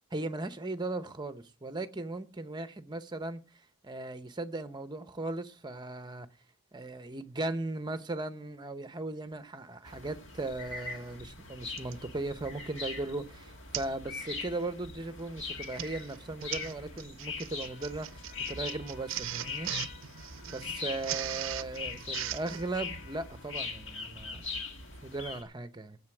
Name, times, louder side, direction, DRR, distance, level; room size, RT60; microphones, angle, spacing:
voice 1, 0.1-3.4 3.8-6.3 6.7-19.7 20.5-24.4 25.0-26.0, right 2 dB, 20° right, 0.8 m, -37 dB
sound 1, 9.8-25.4, left 4 dB, 60° left, 1.8 m, -42 dB
Printer, 11.8-12.0 12.6-12.9 13.1-13.2 13.7-14.0 14.3-14.6 15.4-22.6, right 12 dB, 60° right, 0.5 m, -39 dB
Trumpet, 17.6-24.1, left 5 dB, 40° left, 5.9 m, -57 dB
9.4 x 7.8 x 7.7 m
head